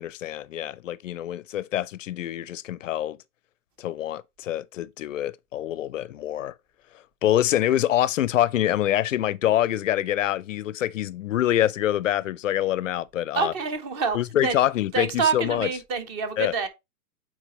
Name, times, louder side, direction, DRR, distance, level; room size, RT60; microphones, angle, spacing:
voice 1, 0.0-3.2 3.8-6.5 7.2-13.5 14.1-15.7 16.4-16.5, left 12 dB, 55° left, 0.5 m, -25 dB
voice 2, 13.3-14.2 14.4-14.5 14.9-16.7, right 5 dB, 25° right, 0.8 m, -26 dB
8.4 x 4.3 x 3.0 m
hypercardioid pair, 135°, 47 cm